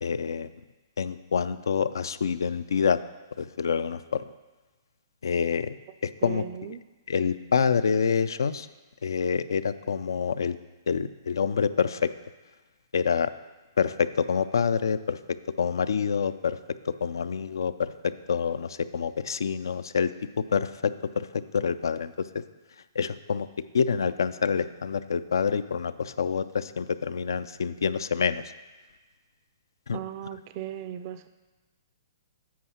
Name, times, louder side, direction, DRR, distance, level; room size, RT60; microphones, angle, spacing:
voice 1, 0.0-0.5 1.0-3.0 3.4-4.2 5.2-5.8 6.0-6.4 7.1-8.7 9.0-10.6 10.9-12.1 12.9-13.3 13.8-15.2 15.6-16.6 16.9-20.1 20.4-22.3 23.0-23.5 23.7-28.4 29.9-30.0, left 6 dB, 80° left, 14 dB, 0.3 m, -27 dB
voice 2, 6.2-6.8 29.9-31.3, right 10 dB, 40° right, 11 dB, 0.4 m, -37 dB
8.5 x 4.6 x 5.7 m, 1.3 s
hypercardioid pair, 140°, 2 cm